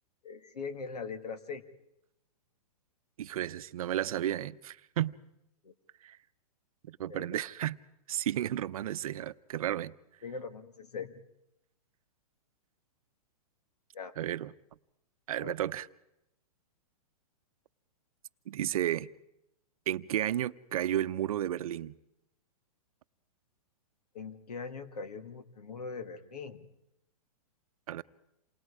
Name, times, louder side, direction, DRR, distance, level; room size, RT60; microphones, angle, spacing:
voice 1, 0.2-1.6 5.6-5.7 7.1-7.4 10.2-11.2 13.9-14.1 15.4-15.5 24.1-26.7, left 5 dB, 85° left, 1.9 m, -41 dB
voice 2, 3.2-5.2 6.0-6.2 6.9-7.8 8.1-9.9 14.2-14.5 15.3-15.9 18.5-19.1 19.9-22.0 27.9-28.0, right 12 dB, 65° right, 0.7 m, -32 dB
28.0 x 20.5 x 4.9 m
hypercardioid pair, 150°, 20 cm